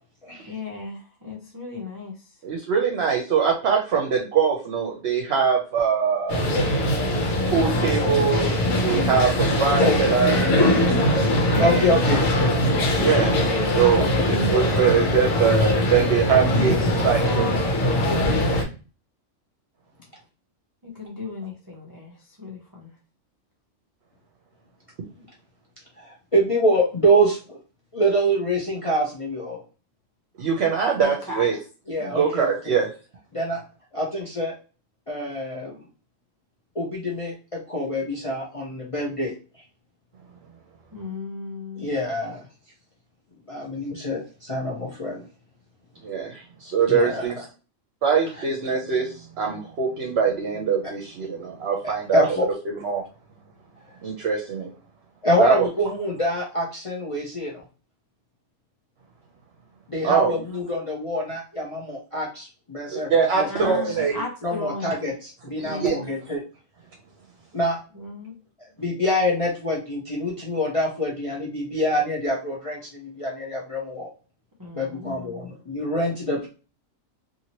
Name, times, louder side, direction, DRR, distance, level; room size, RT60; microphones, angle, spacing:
voice 1, 0.3-2.4 10.0-10.2 16.5-18.5 20.8-22.9 31.0-31.5 32.0-32.4 40.9-41.9 63.5-64.9 65.6-66.0 67.9-68.3 74.6-75.6, left 3 dB, 35° right, -3 dB, 0.3 m, -36 dB
voice 2, 2.4-6.4 7.4-10.4 11.5-12.0 12.9-13.4 13.7-17.5 18.5-18.6 30.4-31.6 32.1-32.9 46.0-47.4 48.0-53.0 54.0-54.7 55.4-55.7 60.0-60.4 62.9-64.2 65.6-66.0, right 6 dB, 60° right, 1 dB, 0.8 m, -23 dB
sound 1, 6.3-18.6, left 1 dB, 85° left, 1.2 m, -21 dB
voice 3, 11.6-12.2 14.0-14.3 26.0-27.6 27.9-29.6 31.9-32.7 33.3-33.6 33.9-34.5 35.1-35.8 36.7-39.3 41.8-42.4 43.5-45.2 46.9-47.3 51.8-52.5 55.2-57.6 59.9-63.1 63.4-63.8 64.4-65.1 65.4-66.4 67.5-67.8 68.8-74.1 74.7-76.5, equal, 35° left, -4 dB, 0.6 m, -25 dB
2.8 x 2.7 x 2.8 m, 0.33 s
omnidirectional pair, 1.3 m